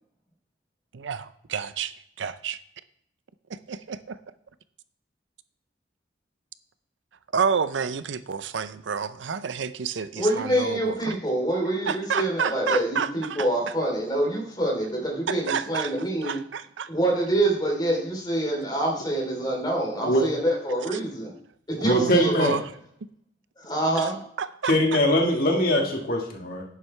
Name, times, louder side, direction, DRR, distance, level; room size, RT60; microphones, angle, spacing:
voice 1, 0.9-2.6 3.5-4.2 7.3-11.2 11.9-13.5 15.3-15.9 16.2-16.9 20.9-21.0 21.8-22.6 24.4-25.0, right 6 dB, 85° right, 14 dB, 0.6 m, -29 dB
voice 2, 10.2-16.4 16.9-21.3 21.8-22.6 23.6-24.2, right 1 dB, 25° left, 0 dB, 3.3 m, -26 dB
voice 3, 21.8-22.6 24.6-26.6, equal, 50° left, 1 dB, 1.7 m, -22 dB
11.0 x 9.5 x 3.3 m, 0.71 s
head